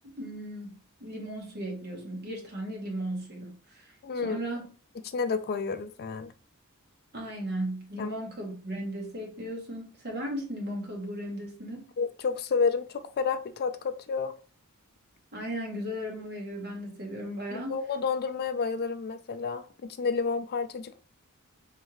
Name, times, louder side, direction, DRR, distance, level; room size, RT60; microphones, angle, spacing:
voice 1, 0.2-3.9 4.2-4.7 7.1-11.9 15.3-17.8, right 1 dB, 50° right, 0 dB, 1.5 m, -36 dB
voice 2, 4.0-4.4 5.0-6.3 8.0-8.1 12.0-14.3 17.5-21.0, left 5 dB, 45° left, 10 dB, 0.4 m, -30 dB
3.6 x 3.2 x 3.1 m, 0.39 s
head